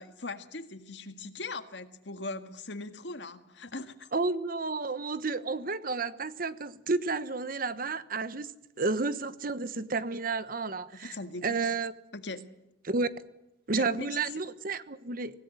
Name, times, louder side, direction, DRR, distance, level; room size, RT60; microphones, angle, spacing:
voice 1, 0.0-4.1 11.0-11.6 12.1-12.6 13.8-14.2, left 3 dB, 70° left, 1.8 m, -40 dB
voice 2, 4.1-8.5 8.8-11.2 11.4-11.9 12.8-13.1 13.7-15.4, right 3 dB, 50° right, 1.1 m, -31 dB
25.0 x 17.0 x 9.7 m
head